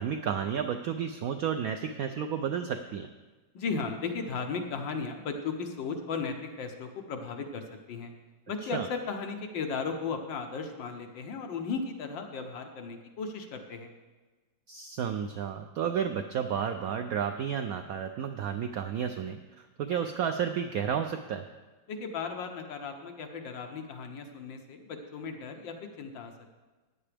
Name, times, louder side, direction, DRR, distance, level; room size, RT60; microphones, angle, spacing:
voice 1, 0.0-3.1 8.6-8.9 14.7-21.4, right 8 dB, 80° right, 7 dB, 0.8 m, -32 dB
voice 2, 3.5-8.1 8.5-13.9 21.9-26.3, left 5 dB, 75° left, 5 dB, 1.6 m, -36 dB
14.5 x 9.9 x 3.4 m, 1.3 s
omnidirectional pair, 2.1 m